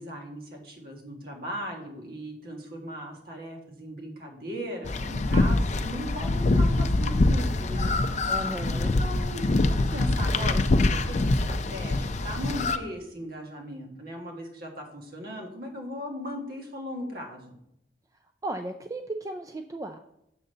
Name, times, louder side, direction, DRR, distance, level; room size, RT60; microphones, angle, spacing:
voice 1, 0.0-7.9 8.7-17.6, equal, 60° right, 1 dB, 1.7 m, -38 dB
sound 1, 4.8-12.8, left 2 dB, 40° left, 0.5 m, -24 dB
voice 2, 8.3-8.9 18.4-20.0, right 2 dB, 20° right, 6 dB, 0.4 m, -35 dB
7.2 x 4.0 x 6.6 m, 0.80 s
head